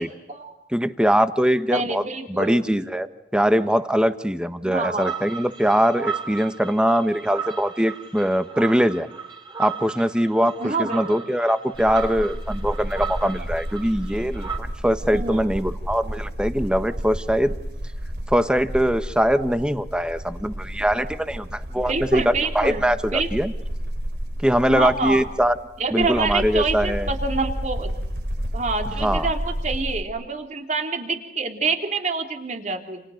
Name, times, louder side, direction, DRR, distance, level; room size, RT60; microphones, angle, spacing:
voice 1, 0.0-0.5 1.7-2.8 4.6-5.1 10.6-11.2 15.1-15.4 21.8-22.8 23.1-23.3 24.7-25.2 25.8-27.9 28.5-33.0, right 3 dB, 45° right, 5 dB, 3.4 m, -27 dB
voice 2, 0.7-3.1 3.3-9.1 9.6-17.6 18.3-23.5 24.4-25.6 25.9-27.1 29.0-29.3, equal, 5° right, 10 dB, 1.3 m, -22 dB
sound 1, 5.0-14.6, right 6 dB, 25° right, 3.7 m, -35 dB
sound 2, 11.7-30.0, equal, 70° right, 3.4 m, -31 dB
29.5 x 29.0 x 6.5 m, 0.87 s
head